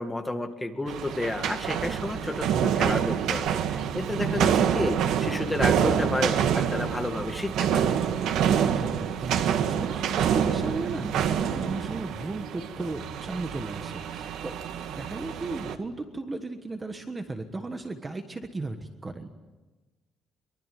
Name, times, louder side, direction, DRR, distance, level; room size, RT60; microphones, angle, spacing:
voice 1, 0.0-7.9, left 2 dB, 10° left, 5 dB, 2.0 m, -31 dB
sound 1, 0.9-15.8, right 8 dB, 80° right, 1.8 m, -27 dB
voice 2, 8.4-14.5 14.9-19.3, right 2 dB, 15° right, 6 dB, 1.4 m, -36 dB
24.0 x 23.5 x 9.3 m, 1.2 s
cardioid pair, 170°, 0 cm